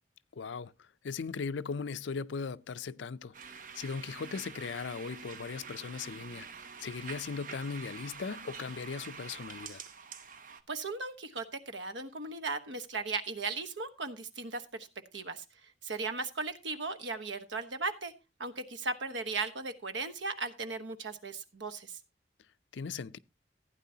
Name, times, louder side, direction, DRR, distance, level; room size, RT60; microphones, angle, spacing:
voice 1, 0.3-3.3 3.7-6.5 6.8-9.8 22.7-23.2, left 5 dB, 80° left, 0.5 m, -38 dB
sound 1, 3.3-10.6, right 6 dB, 45° right, 0.9 m, -46 dB
voice 2, 10.7-14.9 15.1-15.4 15.8-18.1 18.4-22.0, right 3 dB, 85° right, 1.2 m, -37 dB
15.5 x 9.2 x 2.8 m
head